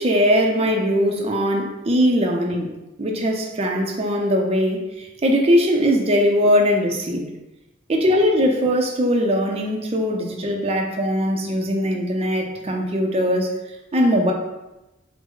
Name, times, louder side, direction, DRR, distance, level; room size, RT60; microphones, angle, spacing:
voice 1, 0.0-2.7 3.0-7.3 7.9-13.6 13.9-14.3, equal, 35° right, 1 dB, 0.5 m, -20 dB
6.1 x 2.1 x 3.8 m, 0.99 s
head